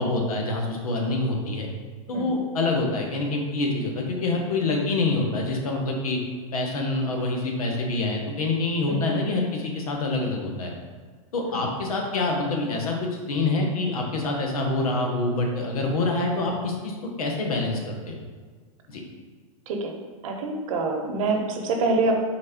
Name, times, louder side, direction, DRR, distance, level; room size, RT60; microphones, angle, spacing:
voice 1, 0.0-1.7 2.1-6.2 6.5-10.7 11.3-18.2 18.9-19.0, left 2 dB, 85° left, 1 dB, 1.0 m, -26 dB
voice 2, 20.2-22.2, right 3 dB, 65° right, 3 dB, 0.8 m, -25 dB
4.1 x 3.3 x 3.6 m, 1.5 s
hypercardioid pair, 140°, 18 cm